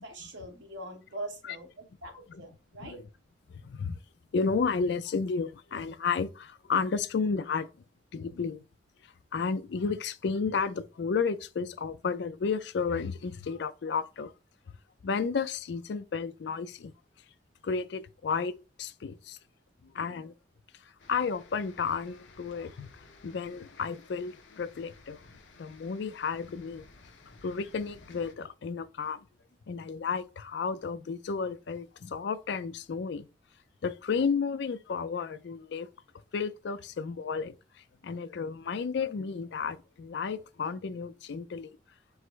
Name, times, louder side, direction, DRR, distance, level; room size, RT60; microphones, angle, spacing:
voice 1, 0.0-3.0, right 1 dB, 80° right, 1.2 m, -42 dB
voice 2, 3.6-4.0 4.3-7.7 8.1-8.6 9.3-14.3 15.0-16.9 17.6-18.5 18.8-19.4 19.8-20.3 21.1-22.9 23.2-25.2 25.6-26.8 27.4-29.2 29.7-33.3 33.8-35.9 36.3-37.5 38.0-41.8, left 5 dB, 65° left, 0.4 m, -32 dB
sound 1, 21.0-28.3, left 3 dB, 80° left, 0.8 m, -55 dB
4.7 x 2.0 x 4.5 m
head